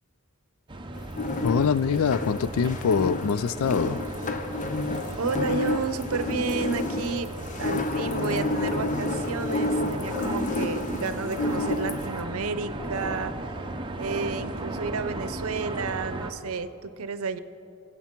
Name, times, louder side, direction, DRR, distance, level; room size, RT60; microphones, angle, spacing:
sound 1, 0.7-16.3, right 2 dB, 20° right, 0.7 m, -36 dB
sound 2, 1.0-12.2, left 2 dB, 35° left, 0.7 m, -30 dB
voice 1, 1.4-4.0, left 6 dB, 80° left, 17 dB, 0.4 m, -24 dB
voice 2, 5.2-7.3 7.6-13.5 14.0-17.4, right 4 dB, 80° right, 12 dB, 0.7 m, -31 dB
24.0 x 8.1 x 4.5 m, 2.8 s
head